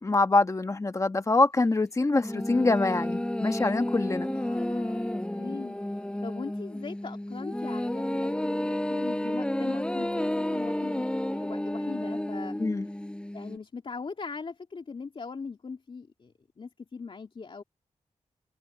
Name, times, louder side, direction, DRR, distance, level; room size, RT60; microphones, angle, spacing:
voice 1, 0.0-4.3 12.6-12.9, left 3 dB, 25° left, 1.3 m, -25 dB
sound 1, 2.2-13.6, left 1 dB, 10° left, 6.2 m, -31 dB
voice 2, 4.3-5.8 6.2-11.1 11.3-12.6 13.3-17.6, left 4 dB, 45° left, 3.0 m, -40 dB
wide cardioid pair, 145°, 12 cm